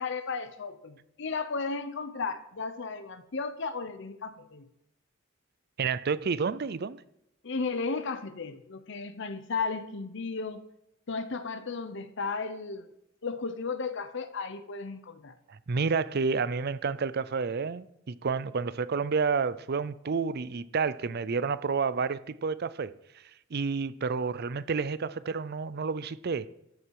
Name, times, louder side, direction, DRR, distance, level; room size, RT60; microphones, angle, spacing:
voice 1, 0.0-4.7 7.4-10.7 11.1-12.9 13.2-15.3, left 4 dB, 65° left, 0.8 m, -34 dB
voice 2, 5.8-7.0 15.5-23.2 23.5-26.5, right 5 dB, 55° right, 0.5 m, -30 dB
13.5 x 9.9 x 4.7 m
head